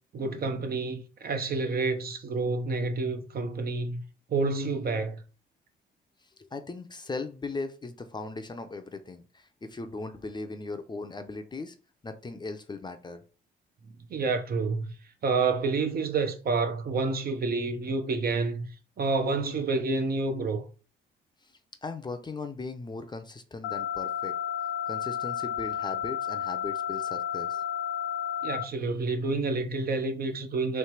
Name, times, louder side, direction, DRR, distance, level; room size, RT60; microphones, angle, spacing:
voice 1, 0.1-4.0 4.3-5.2 14.1-14.9 15.2-18.7 19.0-20.6 28.4-30.8, right 3 dB, 50° right, 0.8 m, -28 dB
voice 2, 6.2-11.8 12.0-13.2 21.4-24.4 24.9-27.6, left 3 dB, 20° left, 0.6 m, -38 dB
sound 1, 23.6-28.6, left 9 dB, 80° left, 0.5 m, -32 dB
3.2 x 3.2 x 4.5 m
cardioid pair, 90°, 20 cm